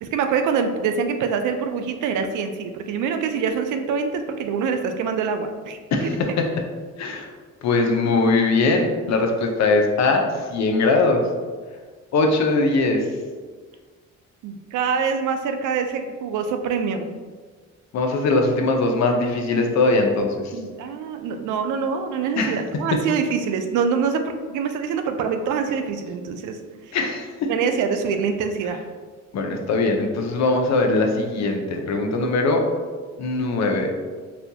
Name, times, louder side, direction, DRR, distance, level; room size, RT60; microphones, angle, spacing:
voice 1, 0.0-6.1 14.4-17.1 20.5-26.6 26.9-27.0 27.5-28.8, right 6 dB, 80° right, 6 dB, 0.4 m, -25 dB
voice 2, 7.0-7.3 7.6-11.2 12.1-13.1 17.9-20.5 22.4-22.6 26.9-27.5 29.3-32.6 33.2-33.9, left 3 dB, 65° left, 3 dB, 0.6 m, -21 dB
4.1 x 2.2 x 2.7 m, 1.5 s
cardioid pair, 90°, 30 cm